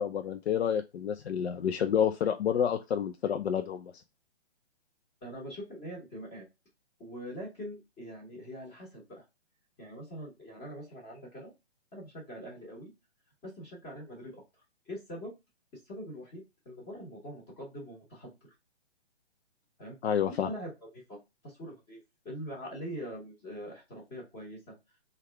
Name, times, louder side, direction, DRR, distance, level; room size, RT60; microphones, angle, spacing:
voice 1, 0.0-3.9 20.0-20.5, left 8 dB, 75° left, 7 dB, 0.5 m, -29 dB
voice 2, 5.2-6.5 7.0-9.2 9.8-11.5 11.9-12.9 13.4-14.4 14.9-15.3 15.9-18.5 19.8-20.0 20.3-22.0 22.2-24.7, equal, 20° left, -3 dB, 1.1 m, -43 dB
3.3 x 2.3 x 3.3 m, 0.23 s
hypercardioid pair, 135°, 32 cm